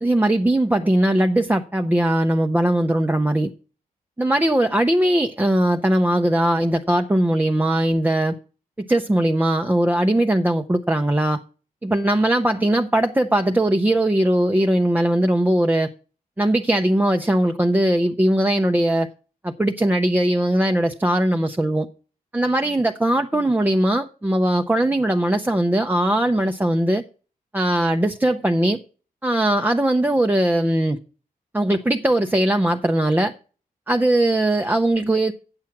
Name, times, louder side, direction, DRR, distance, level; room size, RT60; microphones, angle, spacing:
voice 1, 0.0-3.5 4.2-8.3 8.8-11.4 11.8-15.9 16.4-19.1 19.4-21.9 22.3-27.0 27.5-28.8 29.2-31.0 31.5-33.3 33.9-35.3, right 1 dB, 10° right, 0.6 m, -20 dB
8.8 x 7.3 x 5.8 m
cardioid pair, 85°, 15 cm